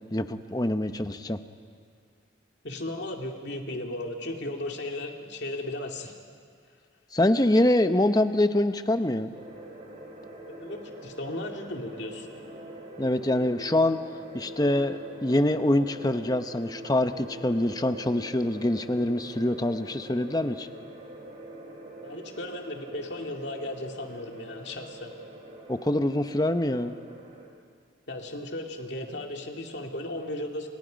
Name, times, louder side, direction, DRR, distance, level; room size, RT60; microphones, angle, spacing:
voice 1, 0.1-1.4 7.1-9.3 13.0-14.0 14.3-20.7 25.7-26.9, left 1 dB, 20° left, 9 dB, 0.8 m, -25 dB
voice 2, 2.6-6.1 10.5-12.3 22.0-25.1 28.1-30.7, left 1 dB, 60° left, 2 dB, 2.4 m, -35 dB
sound 1, 9.3-27.5, right 1 dB, 40° right, 4.1 m, -44 dB
30.0 x 28.5 x 5.2 m, 2.1 s
head